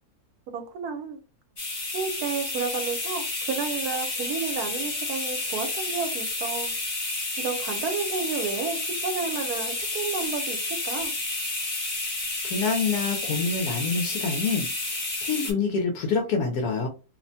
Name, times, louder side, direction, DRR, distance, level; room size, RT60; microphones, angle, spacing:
voice 1, 0.5-1.2 1.9-6.7 7.4-11.1, right 5 dB, 80° right, 1.2 m, -31 dB
sound 1, 1.6-15.5, left 2 dB, 35° left, 0.5 m, -30 dB
voice 2, 12.4-16.9, left 4 dB, 80° left, 1.1 m, -27 dB
2.9 x 2.1 x 2.6 m
omnidirectional pair, 1.6 m